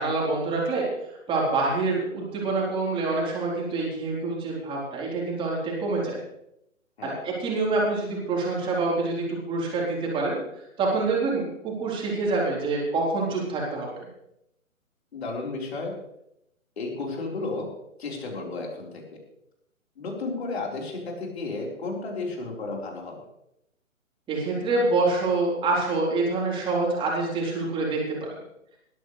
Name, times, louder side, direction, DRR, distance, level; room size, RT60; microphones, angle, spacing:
voice 1, 0.0-6.1 7.0-10.4 10.8-13.9 24.3-28.3, right 3 dB, 10° right, -3 dB, 4.0 m, -26 dB
voice 2, 15.1-15.9 16.8-17.7 18.0-19.0 20.0-23.2, left 3 dB, 50° left, -1 dB, 4.5 m, -33 dB
19.5 x 13.0 x 3.3 m, 0.80 s
figure-of-eight pair, 135°, 41 cm